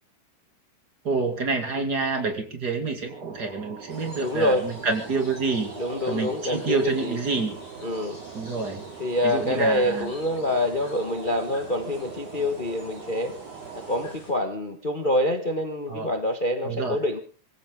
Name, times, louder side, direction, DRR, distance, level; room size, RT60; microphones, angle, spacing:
voice 1, 1.0-5.7 6.0-7.6 8.3-8.8 9.2-10.1 15.9-16.1 16.6-17.0, right 4 dB, 35° right, 5 dB, 2.7 m, -27 dB
sound 1, 3.1-14.2, right 7 dB, 70° right, 3.1 m, -42 dB
sound 2, 3.9-14.3, left 1 dB, 25° left, 7.9 m, -47 dB
voice 2, 4.2-4.6 5.8-7.2 7.8-8.2 9.0-13.3 13.9-17.2, left 1 dB, 55° left, 5 dB, 0.5 m, -26 dB
24.5 x 15.5 x 3.7 m, 0.40 s
omnidirectional pair, 3.6 m